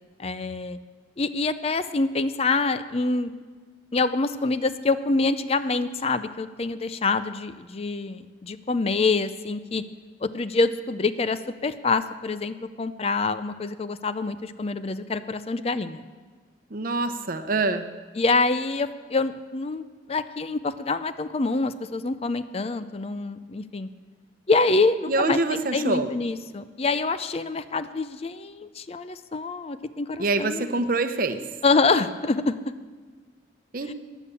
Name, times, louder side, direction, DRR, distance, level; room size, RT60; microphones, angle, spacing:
voice 1, 0.2-0.8 1.2-3.3 3.9-9.8 10.2-16.0 18.2-19.8 20.1-23.9 24.5-30.9 31.6-32.6 33.9-34.0, left 3 dB, 35° left, 12 dB, 0.5 m, -26 dB
voice 2, 16.7-17.8 25.1-26.1 30.2-31.4 33.7-33.9, right 3 dB, 50° right, 9 dB, 0.8 m, -25 dB
15.0 x 10.0 x 7.0 m, 1.4 s
head